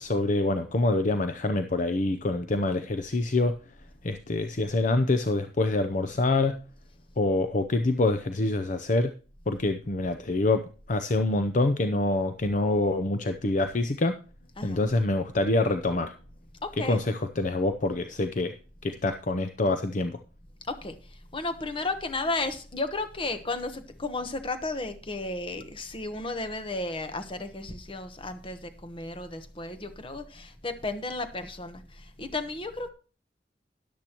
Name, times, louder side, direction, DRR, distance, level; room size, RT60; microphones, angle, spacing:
voice 1, 0.0-3.5 4.0-6.6 7.2-9.1 9.5-10.6 10.9-14.2 14.6-16.1 16.9-18.5 18.8-20.2, left 2 dB, 45° left, 8 dB, 0.6 m, -26 dB
voice 2, 16.6-17.0 20.7-21.0 21.3-32.9, left 2 dB, 30° left, 9 dB, 1.0 m, -33 dB
13.0 x 10.5 x 3.0 m, 0.37 s
head